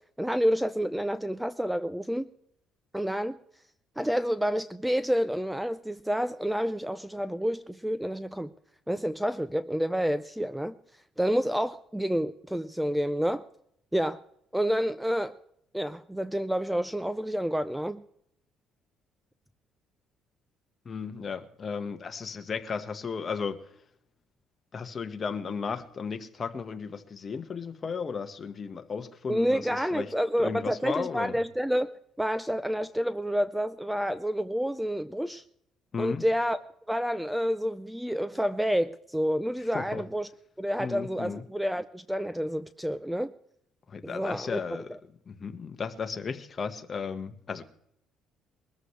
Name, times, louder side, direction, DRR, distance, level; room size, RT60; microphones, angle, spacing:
voice 1, 0.2-2.3 2.9-3.4 4.0-8.5 8.9-10.7 11.2-13.4 13.9-14.2 14.5-15.3 15.7-18.0 29.3-35.4 36.0-36.6 36.9-40.3 40.6-43.3 44.0-44.6, equal, 5° right, 0.5 m, -29 dB
voice 2, 20.8-23.7 24.7-31.4 35.9-36.2 39.7-40.0 40.8-41.4 43.9-47.6, left 5 dB, 35° left, 1.5 m, -35 dB
22.0 x 14.0 x 3.3 m
cardioid pair, 105°, 0 cm